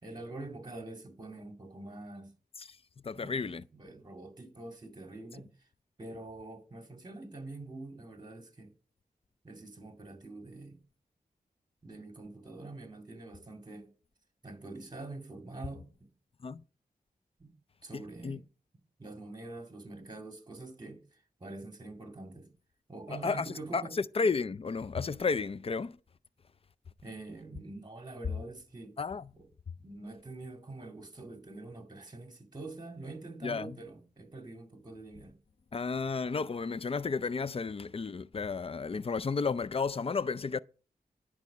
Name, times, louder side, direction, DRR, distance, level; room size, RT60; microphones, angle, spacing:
voice 1, 0.0-2.3 3.1-5.7 6.0-8.7 9.4-10.8 11.8-13.9 14.4-16.1 17.4-17.5 17.8-18.4 19.0-22.5 22.9-24.0 27.0-29.0 29.3-29.5 29.8-35.4, right 2 dB, 25° right, 2.3 m, -45 dB
voice 2, 3.0-3.6 16.4-16.6 17.9-18.4 23.1-26.0 29.0-29.3 33.4-33.8 35.7-40.6, left 4 dB, 40° left, 0.5 m, -33 dB
10.5 x 4.8 x 6.6 m
cardioid pair, 50°, 15 cm